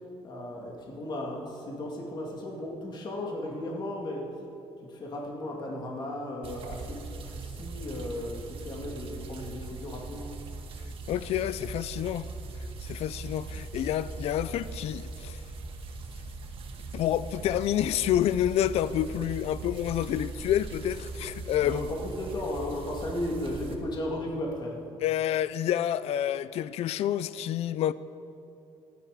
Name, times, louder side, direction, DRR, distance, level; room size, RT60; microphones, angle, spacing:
voice 1, 0.2-4.4 4.8-10.3 21.6-24.8, left 1 dB, 40° left, 2.3 m, -35 dB
sound 1, 6.4-23.7, right 3 dB, 50° right, 1.7 m, -40 dB
voice 2, 11.1-12.3 12.6-15.4 16.9-21.9 25.0-27.9, left 11 dB, 65° left, 0.4 m, -28 dB
26.0 x 10.5 x 5.1 m
cardioid pair, 150°, 11 cm